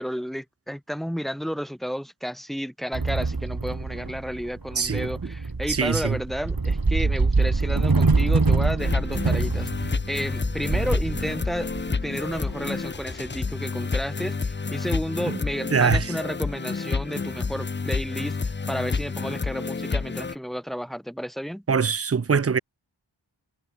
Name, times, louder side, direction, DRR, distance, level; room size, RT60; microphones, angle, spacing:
voice 1, 0.0-21.6, equal, ahead, 2.3 m, -32 dB
sound 1, 2.9-13.1, right 3 dB, 50° right, 2.7 m, -25 dB
voice 2, 4.8-5.1 5.7-6.2 15.3-15.4 15.7-16.1 21.7-22.6, right 5 dB, 35° right, 0.6 m, -22 dB
sound 2, 8.8-20.3, left 4 dB, 25° left, 0.6 m, -29 dB
wide cardioid pair, 60°, 45 cm